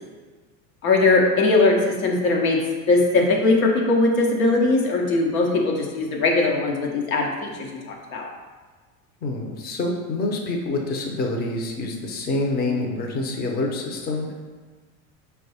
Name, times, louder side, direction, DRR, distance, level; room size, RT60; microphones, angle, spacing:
voice 1, 0.8-2.6 2.9-8.3, left 3 dB, 75° left, 0 dB, 1.0 m, -20 dB
voice 2, 9.2-14.3, left 2 dB, 25° left, 1 dB, 0.6 m, -26 dB
4.5 x 2.3 x 4.2 m, 1.4 s
hypercardioid pair, 90°, 42 cm